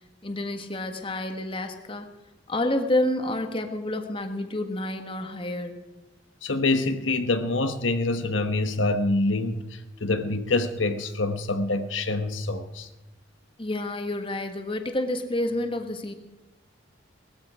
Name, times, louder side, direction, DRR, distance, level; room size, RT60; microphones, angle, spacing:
voice 1, 0.2-2.1 2.5-5.8 13.6-16.1, left 1 dB, 30° left, 1.5 m, -29 dB
voice 2, 6.4-12.9, left 2 dB, 85° left, 1.1 m, -26 dB
19.5 x 14.5 x 5.0 m
head